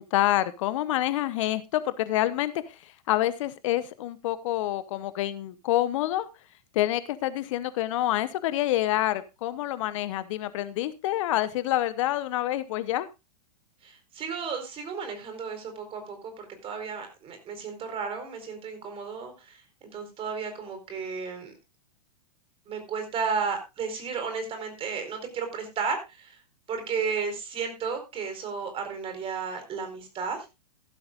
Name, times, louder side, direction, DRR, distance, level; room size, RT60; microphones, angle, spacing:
voice 1, 0.0-2.5 3.1-6.3 6.7-13.1, left 14 dB, 55° left, 15 dB, 0.9 m, -27 dB
voice 2, 13.8-21.5 22.7-26.4 26.7-30.6, right 5 dB, 30° right, 7 dB, 4.3 m, -33 dB
15.5 x 12.0 x 2.4 m, 0.25 s
hypercardioid pair, 105°, 20 cm